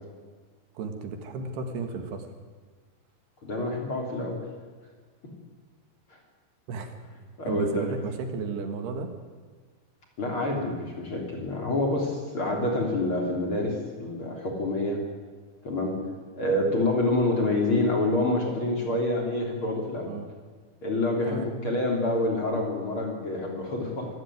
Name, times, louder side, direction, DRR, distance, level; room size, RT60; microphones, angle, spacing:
voice 1, 0.8-2.3 6.7-7.0 7.5-9.1 20.1-20.3 21.3-21.5, right 5 dB, 70° right, 6 dB, 3.6 m, -33 dB
voice 2, 3.4-4.4 6.1-6.2 7.4-7.8 10.2-15.0 15.6-16.0 16.3-20.1 20.8-24.1, left 2 dB, 30° left, 1 dB, 3.8 m, -27 dB
25.5 x 15.0 x 9.4 m, 1.5 s
omnidirectional pair, 5.2 m